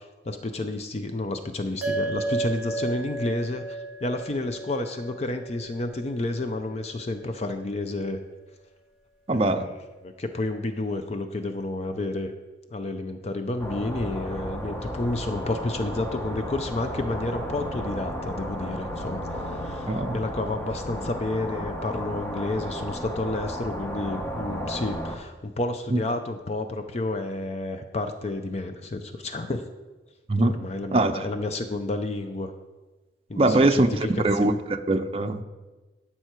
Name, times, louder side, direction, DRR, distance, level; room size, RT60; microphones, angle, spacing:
voice 1, 0.0-8.2 9.3-9.7 10.0-12.3 12.7-29.6 30.4-32.5 33.3-34.6, left 2 dB, 35° left, 7 dB, 0.5 m, -30 dB
sound 1, 1.8-6.5, right 3 dB, 5° right, 1.9 m, -33 dB
voice 2, 9.3-9.6 19.9-20.1 25.9-26.0 30.3-30.5 30.9-31.2 33.4-35.4, right 2 dB, 35° right, 6 dB, 0.6 m, -22 dB
sound 2, 13.6-25.2, equal, 15° left, 1.0 m, -33 dB
12.5 x 5.6 x 4.5 m, 1.2 s
head